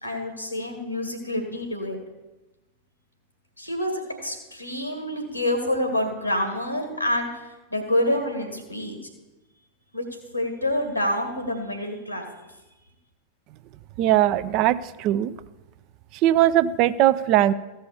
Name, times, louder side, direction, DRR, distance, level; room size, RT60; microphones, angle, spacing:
voice 1, 0.0-2.0 3.6-7.3 7.7-8.9 9.9-10.0 10.3-12.3, left 1 dB, 90° left, 4 dB, 2.1 m, -27 dB
voice 2, 14.0-15.3 16.2-17.5, right 13 dB, 40° right, 14 dB, 0.4 m, -20 dB
14.5 x 5.5 x 7.0 m, 1.1 s
figure-of-eight pair, 90°, 0 cm